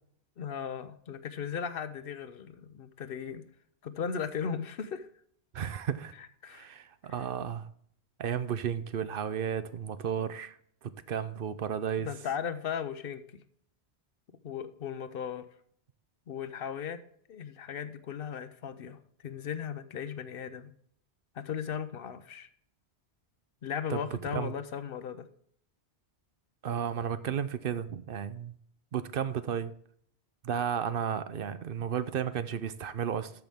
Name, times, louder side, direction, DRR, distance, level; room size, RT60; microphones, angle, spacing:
voice 1, 0.4-3.4 3.8-5.1 6.4-6.7 12.0-13.4 14.4-15.4 16.3-17.0 17.3-20.7 21.4-22.5 23.6-25.3, left 7 dB, 60° left, 0.9 m, -37 dB
voice 2, 5.5-6.2 6.5-7.7 8.2-10.6 10.8-12.1 23.9-24.0 24.3-24.5 26.6-28.6 28.9-29.7 30.4-33.3, right 8 dB, 60° right, 0.8 m, -33 dB
13.5 x 5.9 x 3.5 m
omnidirectional pair, 1.1 m